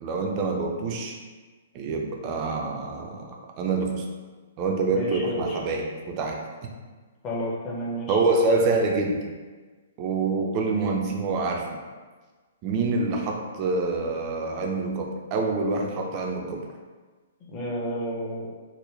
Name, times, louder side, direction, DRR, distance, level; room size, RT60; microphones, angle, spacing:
voice 1, 0.0-1.2 1.7-4.1 4.6-6.4 8.1-9.2 10.0-11.8 12.6-16.7, right 3 dB, 30° right, 1 dB, 0.4 m, -26 dB
voice 2, 4.9-5.6 7.2-8.2 17.4-18.5, equal, 25° left, -4 dB, 0.7 m, -31 dB
3.8 x 2.1 x 3.1 m, 1.4 s
figure-of-eight pair, 115°, 0 cm